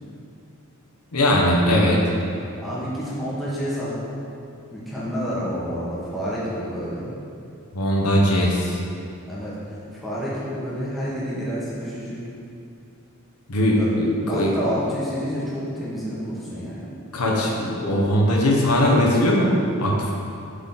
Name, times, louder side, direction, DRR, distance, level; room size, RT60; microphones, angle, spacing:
voice 1, 1.1-2.0 7.7-8.8 13.5-14.5 17.1-19.5 19.8-20.1, left 1 dB, 80° left, -2 dB, 1.0 m, -20 dB
voice 2, 2.6-4.0 4.7-7.1 9.3-12.2 13.7-16.9, equal, ahead, -9 dB, 1.5 m, -29 dB
8.0 x 3.9 x 4.1 m, 2.6 s
head